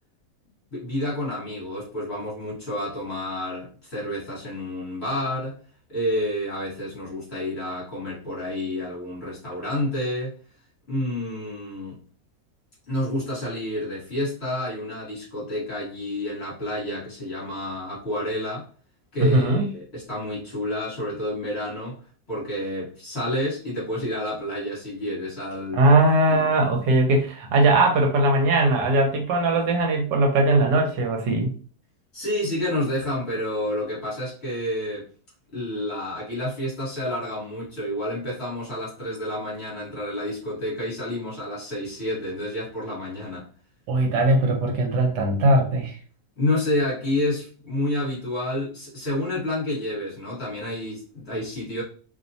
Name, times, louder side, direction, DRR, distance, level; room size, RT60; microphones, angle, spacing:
voice 1, 0.7-5.6 5.9-10.4 10.9-12.0 12.9-18.7 19.1-22.0 22.3-25.9 26.3-26.6 32.1-35.1 35.5-43.5 46.4-51.8, left 1 dB, 40° left, -6 dB, 1.2 m, -29 dB
voice 2, 19.2-19.6 25.7-31.5 43.9-46.0, right 2 dB, 80° right, 2 dB, 1.3 m, -20 dB
2.9 x 2.1 x 2.5 m, 0.40 s
omnidirectional pair, 1.9 m